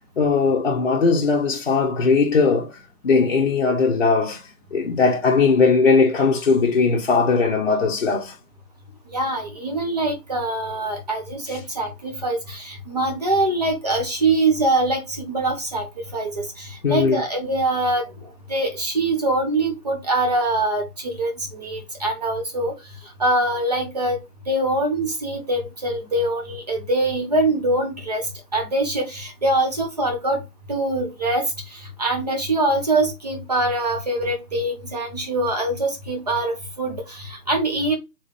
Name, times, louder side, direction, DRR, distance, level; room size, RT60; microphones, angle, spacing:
voice 1, 0.2-2.8 3.0-4.4 4.7-8.3 16.8-17.2, left 4 dB, 40° left, 0.8 m, -19 dB
voice 2, 9.1-15.9 16.1-18.0 18.5-22.7 23.2-24.2 24.5-28.2 28.5-30.4 30.7-31.5 32.0-38.0, right 2 dB, 25° right, 0.8 m, -23 dB
4.0 x 3.8 x 3.2 m
hypercardioid pair, 160°, 48 cm